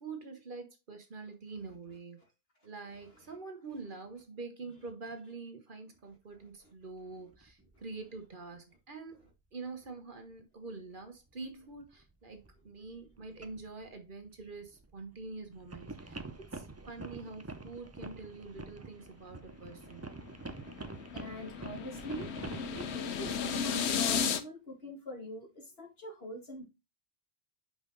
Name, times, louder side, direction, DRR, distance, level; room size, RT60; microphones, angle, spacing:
voice 1, 0.0-2.2 2.6-9.2 9.5-16.2 16.5-20.1, right 3 dB, 50° right, 1.2 m, -45 dB
voice 2, 1.6-2.0 2.8-3.4 3.8-3.9 4.8-4.9 5.9-6.0 6.3-6.7 7.0-7.1 7.8-8.1 8.5-8.6 9.1-9.2 9.6-9.8 10.7-10.8 20.9-22.3 22.7-26.6, left 1 dB, 60° left, 2.3 m, -45 dB
sound 1, 6.5-6.6 7.3-7.8 8.2-8.3 10.4-10.5 11.2-23.8, right 3 dB, 20° right, 0.4 m, -47 dB
sound 2, 20.1-24.4, left 6 dB, 75° left, 1.0 m, -34 dB
5.6 x 5.1 x 3.9 m
omnidirectional pair, 1.1 m